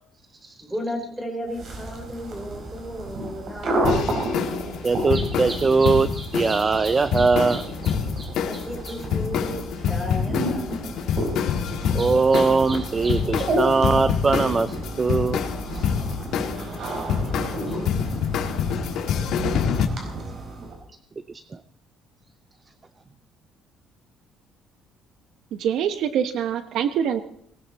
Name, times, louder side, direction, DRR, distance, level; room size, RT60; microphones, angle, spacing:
voice 1, 0.6-4.0 8.5-11.1 16.3-20.2, equal, 5° right, 3 dB, 3.8 m, -36 dB
sound 1, 1.5-20.8, right 1 dB, 45° right, 4.6 m, -31 dB
sound 2, 3.8-19.9, left 7 dB, 65° left, 1.9 m, -27 dB
voice 2, 4.8-9.0 11.7-15.4 15.7-15.9 21.3-21.6, right 4 dB, 20° right, 14 dB, 0.5 m, -22 dB
voice 3, 25.5-27.2, right 8 dB, 65° right, 10 dB, 1.0 m, -24 dB
18.5 x 18.0 x 4.2 m, 0.67 s
cardioid pair, 155°, 0 cm